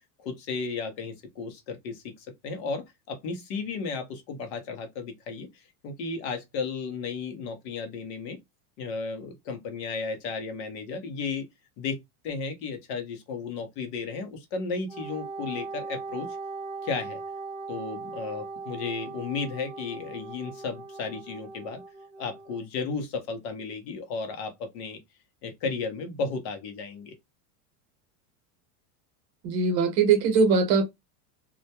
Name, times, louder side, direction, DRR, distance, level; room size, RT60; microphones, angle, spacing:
voice 1, 0.2-5.5 5.8-8.4 8.8-11.4 11.8-16.3 16.8-17.2 17.7-21.8 22.2-25.0 25.4-27.1, left 4 dB, 45° left, 0.6 m, -34 dB
Wind instrument woodwind instrument, 14.9-22.6, right 4 dB, 10° right, 0.8 m, -39 dB
voice 2, 29.4-30.8, right 5 dB, 90° right, 1.0 m, -21 dB
2.2 x 2.1 x 2.7 m
supercardioid pair, 170°, 48 cm